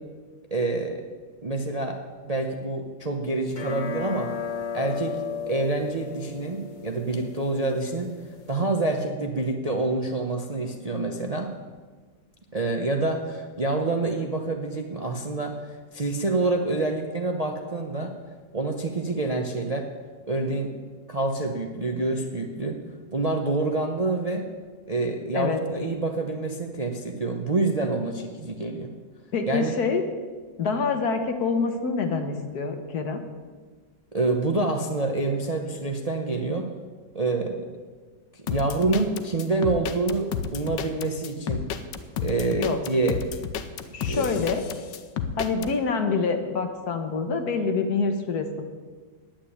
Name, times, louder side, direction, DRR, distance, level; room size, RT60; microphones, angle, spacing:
voice 1, 0.5-1.0 1.4-2.0 2.2-4.3 4.7-5.2 5.5-8.1 8.5-11.5 12.5-18.1 18.5-19.9 20.3-20.7 21.1-22.8 23.1-24.5 24.9-28.9 29.5-29.7 34.1-36.7 37.1-37.6 38.3-41.6 42.2-43.2 44.0-44.3, right 2 dB, 30° right, 3 dB, 0.7 m, -27 dB
sound 1, 3.5-8.5, left 6 dB, 30° left, 1.2 m, -35 dB
voice 2, 29.3-30.0 30.6-33.2 42.5-42.8 43.9-44.6 45.4-48.6, left 4 dB, 60° left, 6 dB, 1.7 m, -26 dB
sound 2, 38.5-45.7, left 7 dB, 85° left, 1.5 m, -31 dB
9.6 x 8.8 x 10.0 m, 1.5 s
omnidirectional pair, 1.9 m